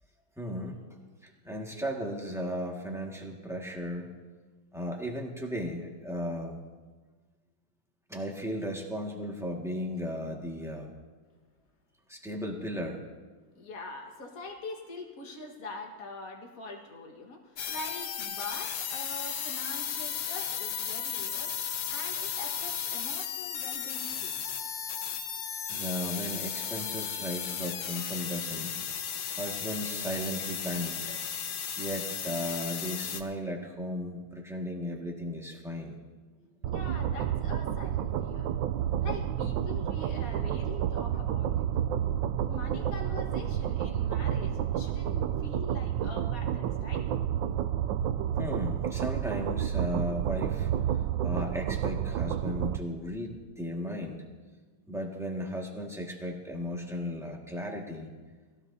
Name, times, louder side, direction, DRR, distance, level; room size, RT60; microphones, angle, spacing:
voice 1, 0.4-0.8 1.2-4.1 4.7-6.6 8.1-10.9 12.1-13.0 25.7-28.8 29.3-31.2 31.8-36.0 48.4-50.7 51.2-54.2 54.9-58.1, equal, ahead, -1 dB, 1.6 m, -35 dB
voice 2, 13.6-21.6 21.9-24.4 36.7-38.5 39.0-41.5 42.4-47.1, left 3 dB, 50° left, 2 dB, 2.0 m, -43 dB
sound 1, 17.6-33.2, left 8 dB, 85° left, 1.6 m, -35 dB
sound 2, 36.6-52.8, right 10 dB, 80° right, 1.3 m, -30 dB
21.0 x 16.0 x 2.8 m, 1.4 s
omnidirectional pair, 2.0 m